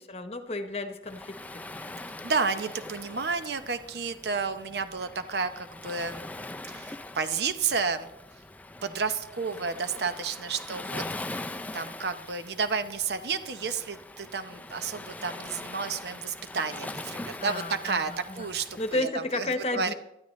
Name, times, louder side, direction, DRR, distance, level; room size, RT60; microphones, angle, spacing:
voice 1, 0.0-1.4 1.9-2.0 17.4-18.5 18.8-19.9, left 2 dB, 35° left, 8 dB, 1.0 m, -32 dB
Waves surf, 1.0-19.0, left 2 dB, 10° left, 0.4 m, -42 dB
voice 2, 2.2-6.2 6.7-8.1 8.8-11.0 11.7-19.5 19.7-19.9, right 5 dB, 65° right, 10 dB, 0.8 m, -31 dB
19.0 x 12.5 x 3.2 m, 0.89 s
head